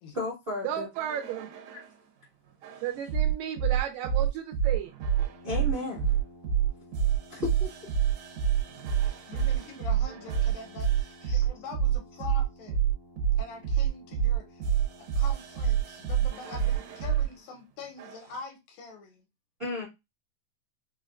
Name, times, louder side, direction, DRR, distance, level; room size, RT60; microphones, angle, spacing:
voice 1, 0.1-0.9 2.7-2.8 5.4-6.1 7.3-7.7 11.2-11.4 19.6-19.9, left 2 dB, 40° right, 0.8 m, -34 dB
voice 2, 0.6-1.5 2.8-4.9, right 10 dB, 80° right, 2.0 m, -33 dB
sound 1, 1.0-1.9 2.6-17.3 18.0-18.4, right 9 dB, 65° right, 2.1 m, -27 dB
Brass instrument, 5.1-17.4, left 1 dB, 10° right, 0.5 m, -54 dB
voice 3, 9.1-12.8 13.4-19.3, left 4 dB, 75° left, 2.6 m, -45 dB
5.6 x 2.1 x 2.4 m
omnidirectional pair, 4.1 m